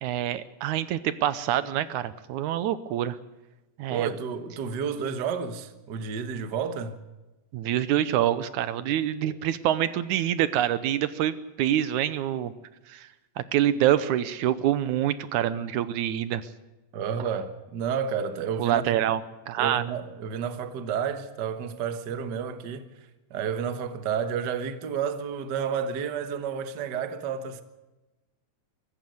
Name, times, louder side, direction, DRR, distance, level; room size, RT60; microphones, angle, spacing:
voice 1, 0.0-3.2 3.8-4.1 7.5-12.5 12.9-13.1 13.4-16.4 18.6-19.2 19.5-19.8, right 11 dB, 75° right, 2.1 m, -26 dB
voice 2, 3.9-7.0 9.2-9.3 16.9-18.8 19.6-22.9 23.3-27.6, right 7 dB, 50° right, 1.4 m, -31 dB
24.0 x 14.5 x 7.9 m
omnidirectional pair, 3.6 m